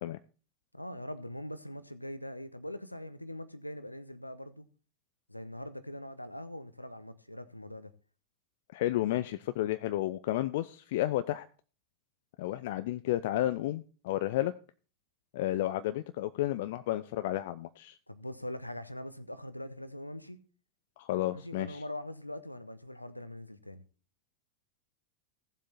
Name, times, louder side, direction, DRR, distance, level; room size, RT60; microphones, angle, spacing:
voice 1, 0.7-4.6 5.3-7.9 18.1-20.4 21.3-23.8, left 1 dB, 85° left, 0.9 m, -42 dB
voice 2, 8.7-11.5 12.4-14.5 15.3-18.0 21.0-21.8, left 14 dB, 50° left, 0.5 m, -32 dB
16.0 x 7.5 x 4.2 m
figure-of-eight pair, 90°, 0 cm